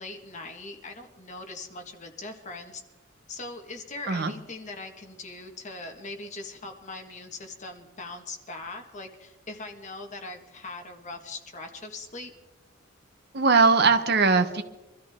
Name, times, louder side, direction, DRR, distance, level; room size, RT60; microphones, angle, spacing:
voice 1, 0.0-2.8 3.3-12.3, left 2 dB, 35° left, 4 dB, 1.6 m, -40 dB
voice 2, 13.3-14.6, right 4 dB, 50° right, 8 dB, 0.9 m, -20 dB
24.0 x 13.5 x 3.7 m, 1.0 s
head